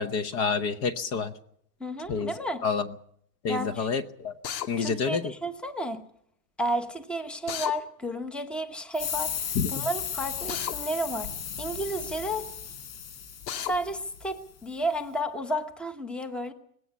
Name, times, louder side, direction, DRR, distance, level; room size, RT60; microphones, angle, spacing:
voice 1, 0.0-1.3 2.1-2.3 2.6-2.9 3.4-4.3 4.7-5.3 9.5-9.7, left 5 dB, 30° left, 12 dB, 0.9 m, -28 dB
voice 2, 1.8-2.6 3.5-3.9 4.8-6.0 6.6-11.3 11.6-12.5 13.6-16.5, equal, ahead, 9 dB, 1.0 m, -32 dB
Drill, 4.4-4.7 7.5-7.8 10.5-10.8 13.5-13.7, left 9 dB, 90° left, 2.4 m, -33 dB
sound 1, 8.9-14.3, left 8 dB, 70° left, 7.4 m, -35 dB
19.5 x 17.0 x 8.4 m, 0.69 s
supercardioid pair, 165°, 49 cm